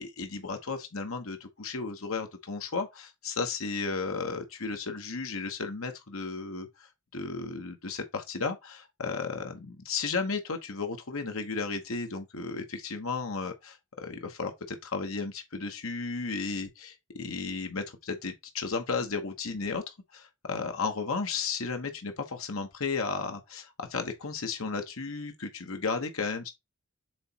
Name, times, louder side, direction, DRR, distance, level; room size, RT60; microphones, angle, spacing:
voice 1, 0.0-26.5, left 4 dB, 85° left, 1.1 m, -34 dB
7.7 x 3.0 x 4.1 m
head